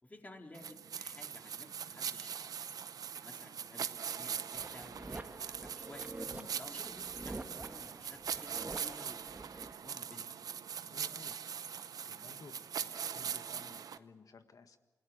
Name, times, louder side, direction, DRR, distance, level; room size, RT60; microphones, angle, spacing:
voice 1, 0.0-2.5 3.1-6.1 6.5-10.4, left 1 dB, 25° left, 2 dB, 4.1 m, -55 dB
sound 1, 0.5-14.0, right 7 dB, 80° right, 0.8 m, -42 dB
sound 2, 4.5-9.7, right 2 dB, 25° right, 1.7 m, -47 dB
voice 2, 10.9-11.4 11.7-14.8, left 5 dB, 65° left, 8 dB, 1.7 m, -56 dB
27.5 x 18.0 x 8.0 m, 1.2 s
cardioid pair, 60°, 6 cm